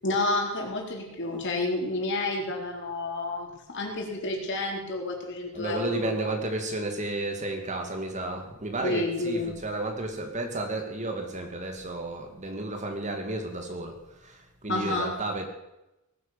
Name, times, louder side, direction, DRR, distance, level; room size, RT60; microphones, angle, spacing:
voice 1, 0.0-6.1 8.8-9.5 14.7-15.1, left 2 dB, 55° left, 0 dB, 4.2 m, -30 dB
voice 2, 5.5-15.5, right 2 dB, 35° right, 4 dB, 2.4 m, -32 dB
19.0 x 9.5 x 7.2 m, 0.91 s
head